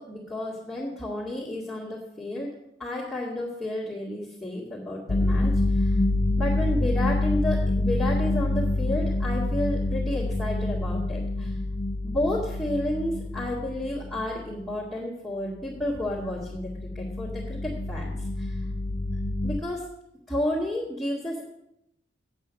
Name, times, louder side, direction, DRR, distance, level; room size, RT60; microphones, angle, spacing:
voice 1, 0.0-2.5 2.8-6.0 6.4-11.5 12.0-18.1 18.4-18.5 19.4-19.8 20.3-21.4, left 1 dB, ahead, -8 dB, 2.1 m, -31 dB
sound 1, 5.1-14.8 15.7-19.6, left 2 dB, 45° left, 0.6 m, -27 dB
8.7 x 8.2 x 6.4 m, 0.79 s
head